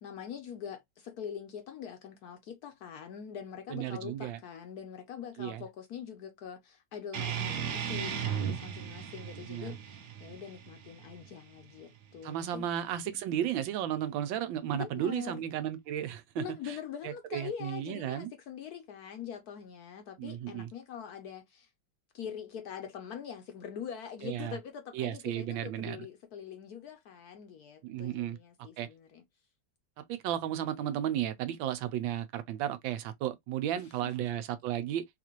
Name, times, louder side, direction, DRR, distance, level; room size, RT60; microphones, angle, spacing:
voice 1, 0.0-12.7 14.7-15.4 16.4-21.7 22.1-29.2 33.7-34.3, left 8 dB, 70° left, 0.9 m, -43 dB
voice 2, 3.7-4.4 5.4-5.6 9.5-9.7 12.2-16.8 17.0-18.3 20.2-20.7 24.2-24.6 24.9-26.1 27.8-28.4 28.8-28.9 30.0-35.1, right 11 dB, 80° right, 1.4 m, -34 dB
sound 1, 7.1-12.2, right 8 dB, 60° right, 1.0 m, -37 dB
4.0 x 2.5 x 2.9 m
omnidirectional pair, 2.1 m